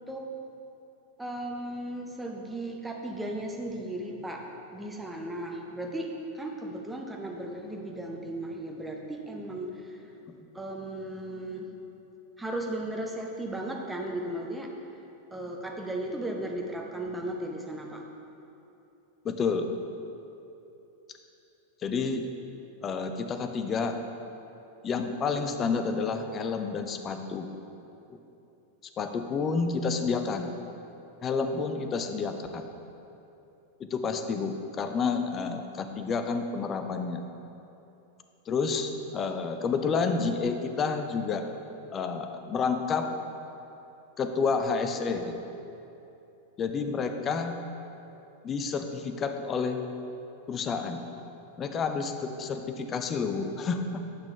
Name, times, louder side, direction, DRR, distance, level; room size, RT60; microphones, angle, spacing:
voice 1, 1.2-4.5 4.7-10.1 10.5-11.7 12.4-14.7 15.3-18.0, right 1 dB, 10° right, 1 dB, 0.7 m, -36 dB
voice 2, 19.2-19.7 21.8-22.3 22.8-24.0 24.8-27.5 29.0-30.5 31.2-32.7 33.8-37.2 38.5-41.5 41.9-43.1 44.2-45.4 46.6-47.6 48.4-49.8 50.5-51.0 51.6-54.1, left 5 dB, 25° left, 6 dB, 0.5 m, -29 dB
8.3 x 5.9 x 3.3 m, 2.9 s
figure-of-eight pair, 90°, 0 cm